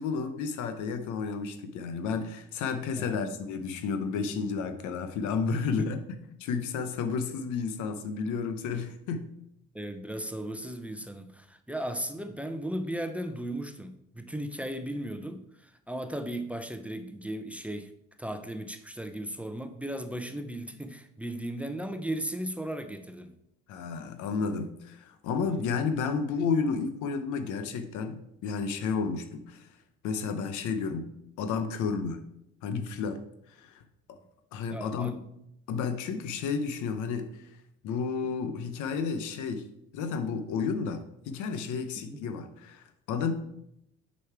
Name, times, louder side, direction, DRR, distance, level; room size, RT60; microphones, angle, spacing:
voice 1, 0.0-6.0 6.4-9.3 23.7-29.7 30.0-31.1 31.4-32.2 32.6-33.2 33.5-33.8 34.1-34.2 34.5-35.1 35.7-37.5 37.8-39.7 39.9-43.3, left 5 dB, 85° left, 9 dB, 0.9 m, -31 dB
voice 2, 2.9-3.3 5.8-5.9 9.7-17.9 18.2-23.3 25.4-25.7 34.7-35.2 38.2-38.3 42.1-42.3, right 1 dB, 5° right, 8 dB, 0.7 m, -36 dB
6.5 x 5.4 x 4.6 m, 0.79 s
supercardioid pair, 70°, 29 cm